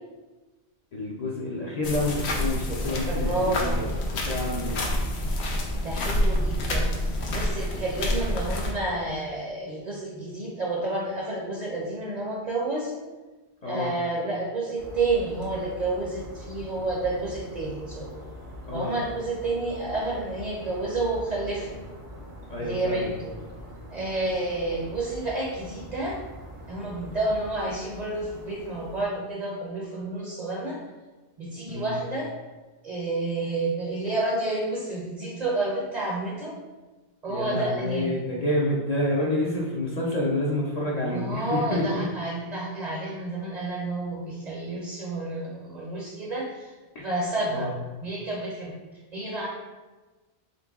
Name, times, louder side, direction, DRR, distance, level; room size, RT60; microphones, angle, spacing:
voice 1, 0.9-3.9 4.2-4.8 13.6-13.9 18.7-18.9 22.5-23.1 31.7-31.9 37.3-42.1 46.9-47.1 47.5-47.7, left 1 dB, 50° left, -3 dB, 0.5 m, -28 dB
sound 1, 1.8-8.7, left 1 dB, 90° left, 0.9 m, -27 dB
voice 2, 3.1-3.8 5.8-13.0 13.6-18.1 18.7-21.8 22.6-23.3 23.9-26.2 26.7-30.8 31.4-32.3 32.8-36.6 37.2-38.2 41.1-46.7 47.0-47.7 48.0-48.7 49.1-49.5, right 2 dB, 50° right, -3 dB, 0.7 m, -30 dB
sound 2, 14.8-29.1, equal, 75° right, 1.2 m, -43 dB
3.9 x 3.6 x 2.3 m, 1.2 s
omnidirectional pair, 1.1 m